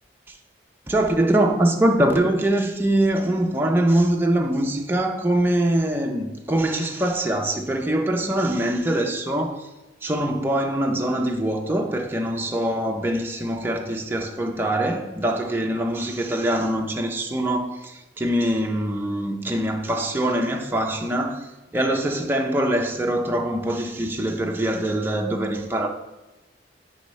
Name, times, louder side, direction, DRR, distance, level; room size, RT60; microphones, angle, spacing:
voice 1, 0.9-9.7 10.0-21.5 21.7-25.9, right 1 dB, 10° right, 0.5 m, -23 dB
9.7 x 3.4 x 3.2 m
head